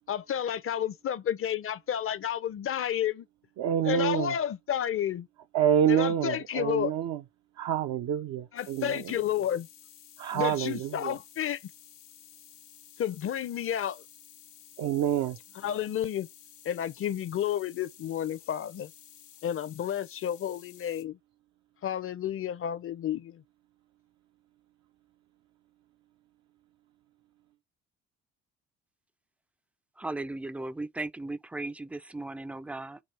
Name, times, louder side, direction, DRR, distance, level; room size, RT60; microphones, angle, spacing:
voice 1, 0.1-3.3 3.9-5.3 5.9-6.9 8.5-9.7 10.3-11.6 13.0-14.0 15.6-16.3 16.6-18.9 19.4-21.2 21.8-23.4, left 10 dB, 40° left, 0.6 m, -31 dB
voice 2, 3.6-4.4 5.5-7.2 7.6-9.2 10.2-11.2 14.8-15.4, right 9 dB, 60° right, 0.6 m, -27 dB
sound 1, 8.6-21.0, left 11 dB, 85° left, 1.1 m, -54 dB
voice 3, 30.0-33.0, right 2 dB, 5° right, 0.4 m, -36 dB
6.1 x 2.4 x 3.4 m
supercardioid pair, 65°, 32 cm